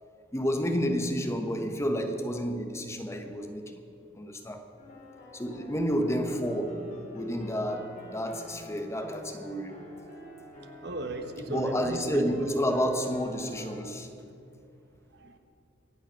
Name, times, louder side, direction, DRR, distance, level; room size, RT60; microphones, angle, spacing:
voice 1, 0.3-3.8 4.1-4.6 5.3-9.8 11.5-14.1, equal, 15° left, 4 dB, 1.2 m, -30 dB
sound 1, 4.8-13.7, left 1 dB, 45° left, 4.4 m, -48 dB
voice 2, 10.8-12.3 15.2-15.4, right 2 dB, 60° right, 7 dB, 1.2 m, -36 dB
24.5 x 9.0 x 5.9 m, 2.7 s
head